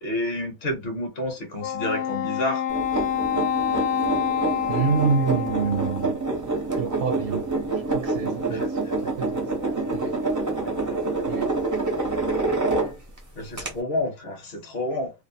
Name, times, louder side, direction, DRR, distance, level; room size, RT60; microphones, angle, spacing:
voice 1, 0.0-2.6 8.5-8.7 10.6-11.2 12.3-12.4 13.3-15.1, left 1 dB, 50° left, 0.9 m, -30 dB
Wind instrument woodwind instrument, 1.6-6.2, left 9 dB, 70° left, 0.5 m, -27 dB
sound 1, 2.7-13.2 13.6-13.7, right 3 dB, 30° right, 0.3 m, -27 dB
voice 2, 4.7-6.2 6.8-7.4 7.9-9.6 9.9-10.2 11.3-11.5, right 5 dB, 65° right, 0.8 m, -27 dB
2.6 x 2.1 x 2.7 m
omnidirectional pair, 1.5 m